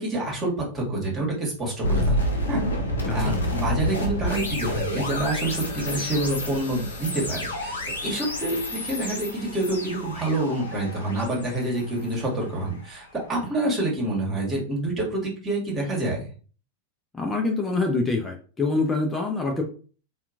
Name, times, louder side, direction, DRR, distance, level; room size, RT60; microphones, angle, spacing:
voice 1, 0.0-2.6 3.1-16.2, right 2 dB, 25° right, -2 dB, 1.5 m, -27 dB
sound 1, 1.8-12.9, left 1 dB, 85° left, 0.7 m, -29 dB
voice 2, 3.1-3.4 17.1-19.6, left 3 dB, 15° left, 1 dB, 0.6 m, -25 dB
2.9 x 2.3 x 2.5 m, 0.39 s
hypercardioid pair, 100°, 0 cm